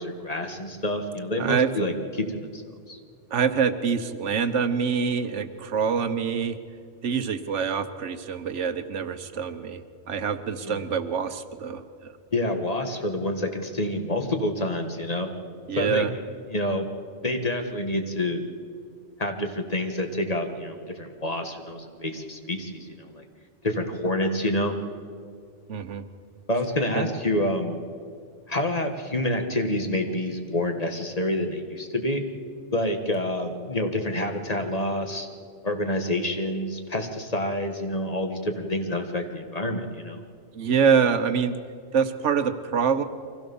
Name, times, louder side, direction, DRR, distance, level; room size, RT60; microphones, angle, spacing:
voice 1, 0.0-2.6 2.9-3.0 10.6-10.8 12.3-15.3 15.8-16.1 16.5-16.8 17.2-18.4 19.2-23.2 23.6-24.7 26.5-27.8 28.5-32.2 32.7-35.3 35.6-40.2, left 1 dB, 35° left, 5 dB, 1.7 m, -28 dB
voice 2, 1.4-1.7 3.3-6.6 7.0-9.8 10.1-12.1 15.7-16.1 25.7-26.0 26.9-27.1 40.5-41.5 41.9-43.0, right 6 dB, 80° right, 10 dB, 1.3 m, -25 dB
24.0 x 16.0 x 7.1 m, 2.2 s
omnidirectional pair, 1.2 m